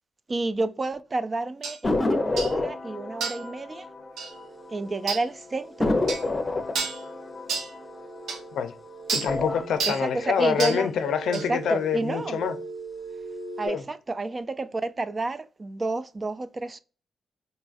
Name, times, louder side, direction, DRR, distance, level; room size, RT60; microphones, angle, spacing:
voice 1, 0.3-3.9 4.7-6.0 9.8-10.9 11.3-12.4 13.6-16.8, right 2 dB, 35° right, 0.3 m, -30 dB
sound 1, 1.6-1.8 2.4-2.6 3.2-3.5 4.2-4.3 5.1-5.3 6.1-6.3 6.7-7.0 7.5-7.7 8.3-8.4 9.1-9.3 9.8-10.0 10.6-10.8 11.3-11.5, right 5 dB, 85° right, 0.6 m, -30 dB
sound 2, 1.8-4.9 5.2-5.3 5.8-8.7 9.2-9.8, left 2 dB, 30° left, 0.7 m, -29 dB
sound 3, 4.3-13.7, right 3 dB, 5° right, 0.7 m, -41 dB
voice 2, 9.1-12.5 13.7-13.8, left 7 dB, 85° left, 0.4 m, -26 dB
3.9 x 2.3 x 2.4 m
cardioid pair, 80°, 0 cm